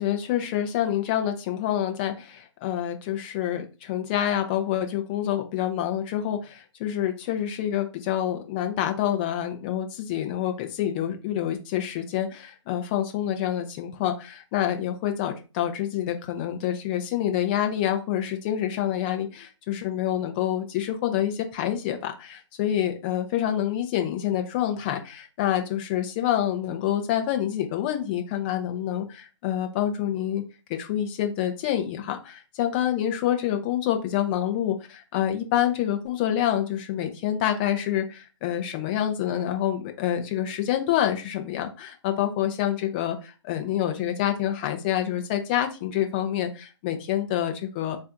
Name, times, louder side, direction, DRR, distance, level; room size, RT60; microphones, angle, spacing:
voice 1, 0.0-30.4 30.7-48.0, left 11 dB, 20° left, 5 dB, 0.5 m, -27 dB
4.3 x 2.6 x 3.4 m, 0.31 s
figure-of-eight pair, 135°, 16 cm